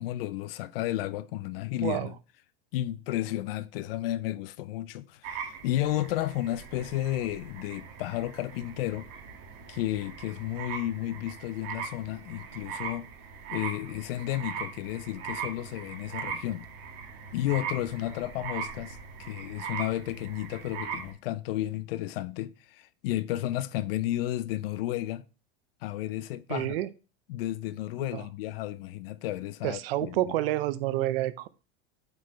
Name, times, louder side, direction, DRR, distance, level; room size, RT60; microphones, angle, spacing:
voice 1, 0.0-2.1 2.7-9.1 9.7-13.1 13.5-16.7 17.3-25.3 25.8-26.8 27.3-30.1, left 14 dB, 70° left, 0.6 m, -32 dB
voice 2, 1.8-2.1 26.5-26.9 28.0-28.2 29.6-31.5, right 15 dB, 75° right, 0.6 m, -29 dB
sound 1, 5.2-21.1, right 6 dB, 45° right, 1.8 m, -40 dB
7.8 x 4.6 x 3.1 m
supercardioid pair, 165°, 30 cm